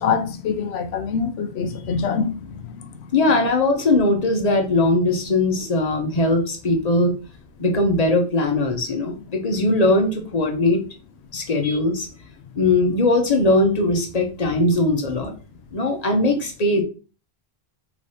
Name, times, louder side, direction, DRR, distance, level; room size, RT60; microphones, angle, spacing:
voice 1, 0.0-3.1 11.6-11.8, left 6 dB, 80° left, 0.9 m, -25 dB
voice 2, 3.1-7.1 7.6-10.8 11.3-12.1 12.6-15.3 15.7-16.8, left 2 dB, 40° left, 0.9 m, -20 dB
3.3 x 3.0 x 4.1 m
omnidirectional pair, 1.1 m